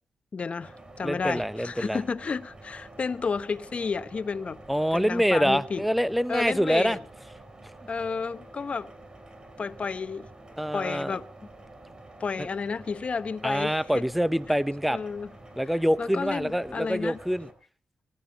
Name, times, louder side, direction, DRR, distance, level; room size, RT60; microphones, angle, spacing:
voice 1, 0.3-4.6 4.9-5.8 6.3-7.0 7.9-8.9 9.6-10.3 10.7-11.2 12.2-14.0 14.9-15.3 16.0-17.2, left 5 dB, 45° left, 0.9 m, -31 dB
sound 1, 0.6-17.5, right 2 dB, 30° right, 3.8 m, -48 dB
voice 2, 1.0-2.0 4.7-7.0 10.6-11.2 12.4-12.5 13.4-15.0 15.6-17.5, equal, ahead, 0.8 m, -25 dB
18.0 x 18.0 x 4.1 m
cardioid pair, 85°, 3 cm